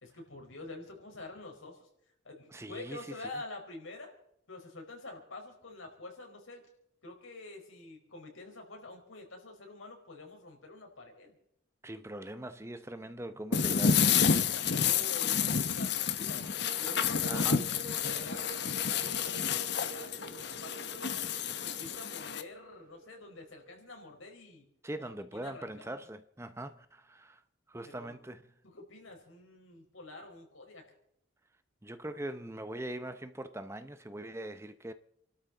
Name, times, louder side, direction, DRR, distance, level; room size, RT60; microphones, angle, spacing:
voice 1, 0.0-1.9 2.2-4.1 4.5-6.6 7.0-11.4 14.6-16.5 16.8-18.6 18.9-21.3 21.6-24.7 25.0-26.0 27.8-28.1 28.7-30.9, left 2 dB, 80° left, 4.7 m, -47 dB
voice 2, 2.5-3.1 11.8-14.1 17.3-17.6 24.8-27.4 27.7-28.4 31.8-34.9, right 1 dB, 15° right, 0.6 m, -42 dB
sound 1, 13.5-22.4, left 7 dB, 55° left, 0.9 m, -30 dB
sound 2, 16.5-24.1, right 4 dB, 45° right, 1.0 m, -49 dB
29.0 x 12.5 x 3.9 m
head